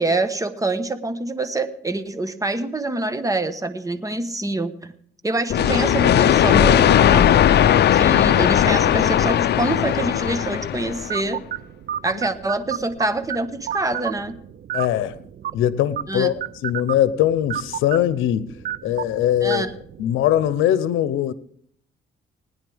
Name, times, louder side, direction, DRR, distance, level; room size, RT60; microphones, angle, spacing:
voice 1, 0.0-4.9 5.2-7.3 7.9-11.4 12.0-14.4 16.1-16.3 19.4-19.7, right 2 dB, 15° right, 1.2 m, -25 dB
sound 1, 5.5-11.2, left 10 dB, 55° left, 0.6 m, -17 dB
sound 2, 11.1-20.6, right 10 dB, 50° right, 0.5 m, -33 dB
voice 2, 14.7-15.2 15.5-18.5 18.8-19.6 20.0-21.3, left 11 dB, 90° left, 0.8 m, -21 dB
19.5 x 10.0 x 3.5 m
cardioid pair, 90°, 20 cm